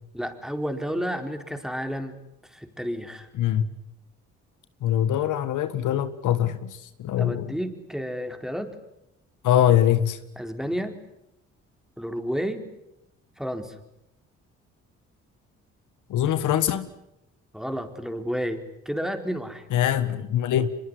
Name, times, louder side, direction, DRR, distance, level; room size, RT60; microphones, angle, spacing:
voice 1, 0.1-2.2 2.5-3.3 7.2-8.7 10.4-11.0 12.0-12.7 13.4-13.7 17.5-19.7, equal, ahead, 4.5 m, -31 dB
voice 2, 3.4-3.7 4.8-7.5 9.4-10.2 16.1-16.9 19.7-20.7, left 11 dB, 75° left, 1.8 m, -23 dB
24.5 x 22.5 x 9.7 m
supercardioid pair, 70°, 31 cm